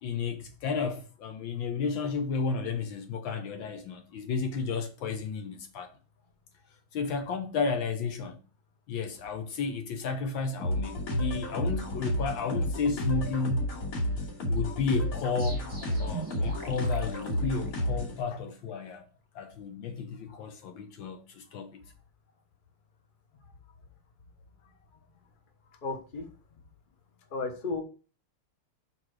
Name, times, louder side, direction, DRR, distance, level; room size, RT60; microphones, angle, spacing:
voice 1, 0.0-5.9 6.9-8.4 8.9-13.7 14.5-15.6 16.0-19.0 19.3-21.8, left 5 dB, 70° left, 1.5 m, -32 dB
sound 1, 10.6-18.2, equal, 85° left, 3.5 m, -31 dB
sound 2, 15.4-18.2, right 5 dB, 15° right, 1.4 m, -43 dB
voice 2, 25.8-26.3 27.3-27.8, left 3 dB, 30° left, 0.9 m, -33 dB
5.8 x 4.8 x 4.7 m
omnidirectional pair, 2.4 m